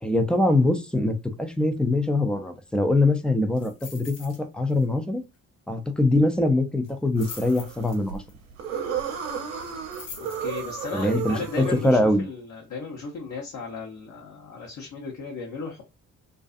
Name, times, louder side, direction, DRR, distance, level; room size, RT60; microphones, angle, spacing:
voice 1, 0.0-5.2 5.7-8.2 10.9-12.3, left 2 dB, ahead, 0.5 m, -23 dB
sound 1, 3.6-4.4 4.7-5.0 5.2-5.3 6.8-8.3 9.6-10.9 11.4-11.5, left 5 dB, 85° left, 0.9 m, -43 dB
sound 2, 7.2-12.1, right 7 dB, 80° right, 0.8 m, -33 dB
voice 2, 10.4-15.8, left 4 dB, 45° left, 1.0 m, -35 dB
2.6 x 2.3 x 2.4 m
hypercardioid pair, 50°, 40 cm